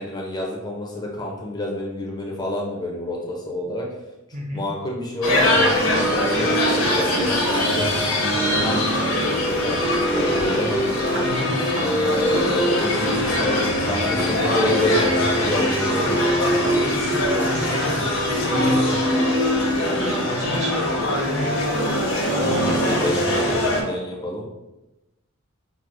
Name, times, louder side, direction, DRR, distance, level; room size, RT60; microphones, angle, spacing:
voice 1, 0.0-3.9 4.5-7.9 8.3-10.8 11.8-16.2 22.3-24.5, left 1 dB, 20° left, -2 dB, 0.5 m, -28 dB
voice 2, 4.3-4.6 11.2-11.5 17.0-18.0 18.4-19.0 19.2-19.5 20.0-20.9 21.3-22.0 22.3-23.4, equal, 35° right, -1 dB, 0.7 m, -31 dB
sound 1, 5.2-23.8, left 1 dB, 85° left, 1.0 m, -21 dB
sound 2, 6.3-7.7 8.1-8.3 8.7-12.5 12.8-15.7 16.0-16.9, right 1 dB, 55° right, 1.1 m, -33 dB
6.0 x 2.0 x 2.5 m, 0.99 s
head